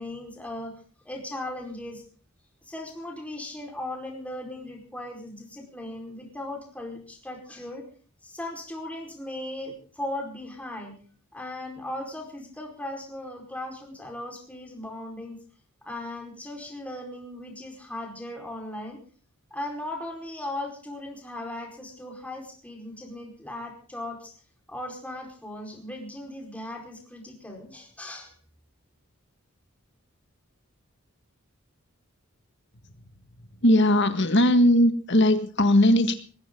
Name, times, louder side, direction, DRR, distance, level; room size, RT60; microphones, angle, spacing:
voice 1, 0.0-2.0 2.6-7.8 8.2-11.0 11.3-15.4 15.8-19.0 19.5-24.3 24.7-28.3, left 1 dB, 5° left, 0 dB, 4.6 m, -37 dB
voice 2, 33.6-36.2, left 1 dB, 55° left, 9 dB, 1.8 m, -19 dB
20.0 x 16.0 x 3.8 m, 0.41 s
head